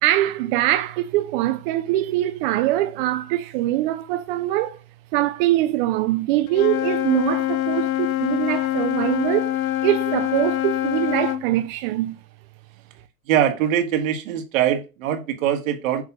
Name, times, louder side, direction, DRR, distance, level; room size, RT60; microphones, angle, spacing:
voice 1, 0.0-4.8 5.1-9.6 9.8-12.2, right 15 dB, 40° right, 0.5 m, -23 dB
Wind instrument woodwind instrument, 6.5-11.4, left 14 dB, 70° left, 0.9 m, -24 dB
voice 2, 13.3-16.0, right 10 dB, 65° right, 2.0 m, -22 dB
8.1 x 3.3 x 5.4 m
hypercardioid pair, 135°, 43 cm